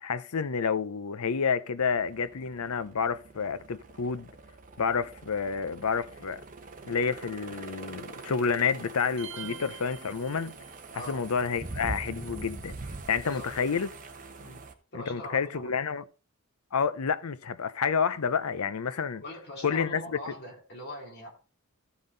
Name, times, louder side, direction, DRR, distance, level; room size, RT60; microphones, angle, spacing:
voice 1, 0.0-4.3 4.8-6.4 6.8-10.5 11.1-12.8 13.1-13.9 14.9-16.0 16.7-19.2 19.6-20.0, left 6 dB, 90° left, 0.6 m, -29 dB
sound 1, 1.8-14.7, right 3 dB, 40° right, 1.1 m, -44 dB
sound 2, 9.2-11.0, right 7 dB, 60° right, 1.0 m, -45 dB
voice 2, 10.9-11.3 13.2-13.9 14.4-14.6 14.9-15.8 19.2-21.3, left 1 dB, 50° left, 2.9 m, -42 dB
13.5 x 5.6 x 3.9 m
head